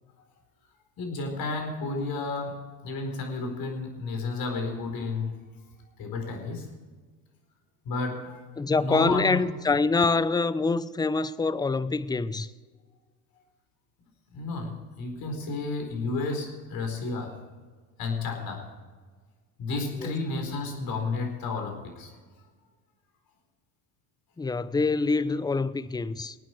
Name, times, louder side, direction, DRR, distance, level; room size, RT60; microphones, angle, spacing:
voice 1, 1.0-5.4 6.0-6.7 7.8-8.4 8.8-9.5 14.3-17.4 18.0-18.7 19.6-22.1, left 3 dB, 50° left, 4.5 m, -32 dB
voice 2, 8.6-12.5 20.0-20.1 24.4-26.4, left 3 dB, 10° left, 0.6 m, -25 dB
23.5 x 9.2 x 4.7 m
hypercardioid pair, 75°, 43 cm